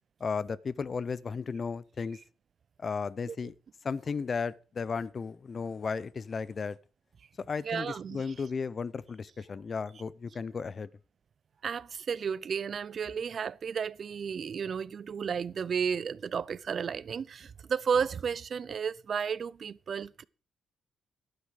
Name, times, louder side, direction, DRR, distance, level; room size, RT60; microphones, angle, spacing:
voice 1, 0.2-2.2 2.8-3.5 3.8-6.8 7.5-10.9, left 5 dB, 40° left, 0.6 m, -34 dB
voice 2, 7.6-8.3 11.6-20.2, right 6 dB, 50° right, 0.5 m, -33 dB
12.0 x 9.6 x 4.8 m
cardioid pair, 90°, 0 cm